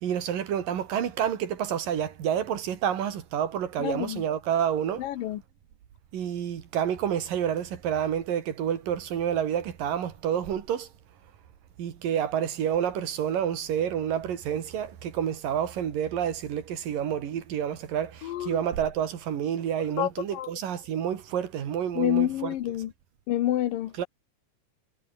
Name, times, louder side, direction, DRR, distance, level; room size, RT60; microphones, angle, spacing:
voice 1, 0.0-5.0 6.1-10.9 11.8-18.1 18.4-22.6 24.0-24.1, right 9 dB, 90° right, 4.0 m, -29 dB
voice 2, 3.8-4.2 5.0-5.4 18.2-18.6 20.0-20.5 22.0-22.9 23.3-23.9, left 13 dB, 85° left, 3.0 m, -28 dB
omnidirectional pair, 3.8 m